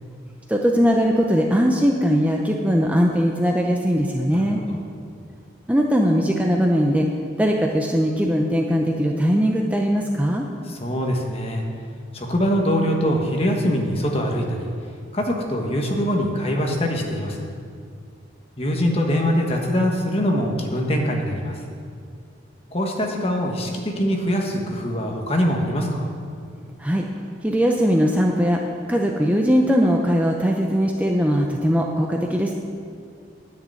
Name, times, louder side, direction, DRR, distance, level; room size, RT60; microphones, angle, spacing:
voice 1, 0.5-4.6 5.7-7.1 7.4-10.5 26.8-27.0 27.4-28.6 28.9-32.5, equal, 10° right, 0 dB, 0.6 m, -20 dB
voice 2, 4.3-4.8 10.7-11.6 12.1-14.7 15.1-17.5 18.6-21.6 22.7-26.1, equal, 30° left, 1 dB, 1.4 m, -23 dB
10.0 x 6.6 x 8.9 m, 2.2 s
head